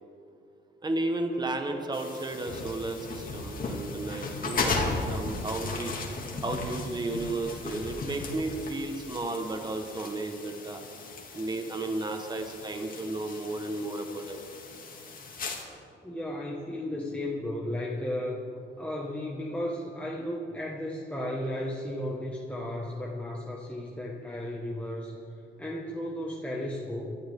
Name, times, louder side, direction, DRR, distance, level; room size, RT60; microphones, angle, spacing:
voice 1, 0.8-5.9 6.4-10.8 11.3-14.4, right 2 dB, 20° right, 4 dB, 1.3 m, -33 dB
sound 1, 1.9-15.6, left 3 dB, 45° left, 2.5 m, -36 dB
voice 2, 16.0-18.4 18.8-25.2 25.6-27.1, left 1 dB, 5° left, -3 dB, 1.6 m, -34 dB
22.5 x 13.5 x 3.7 m, 2.6 s
cardioid pair, 90°, 20 cm